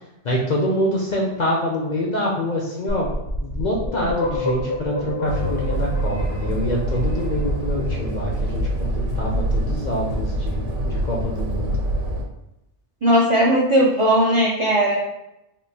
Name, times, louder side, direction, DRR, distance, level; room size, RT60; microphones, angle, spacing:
voice 1, 0.2-3.1 3.4-10.6 11.0-11.7, equal, 55° left, -2 dB, 0.5 m, -25 dB
sound 1, 2.9-7.7, left 2 dB, 75° left, 1.0 m, -29 dB
sound 2, 5.3-12.2, right 1 dB, 85° right, 0.9 m, -25 dB
voice 2, 13.0-15.0, equal, 55° right, -4 dB, 0.3 m, -17 dB
3.7 x 2.5 x 2.6 m, 0.89 s
omnidirectional pair, 1.2 m